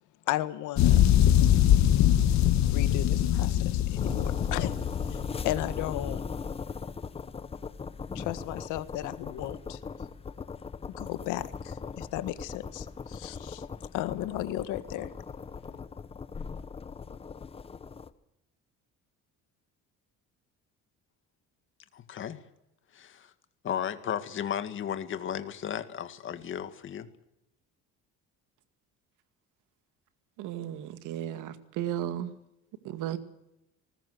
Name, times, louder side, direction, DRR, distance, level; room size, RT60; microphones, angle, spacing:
voice 1, 0.3-1.1 2.7-4.8 5.1-6.2 8.2-9.8 11.0-13.6 13.9-15.1 15.7-15.8, left 15 dB, 90° left, 1.8 m, -35 dB
sound 1, 0.8-5.6, left 11 dB, 65° left, 2.0 m, -23 dB
sound 2, 4.0-18.1, left 5 dB, 20° left, 1.0 m, -38 dB
voice 2, 21.9-22.4 22.9-23.3 23.6-27.1, left 9 dB, 40° left, 1.9 m, -34 dB
voice 3, 30.4-32.3 32.8-33.2, right 11 dB, 85° right, 2.2 m, -34 dB
20.0 x 20.0 x 8.0 m
cardioid pair, 155°, 30 cm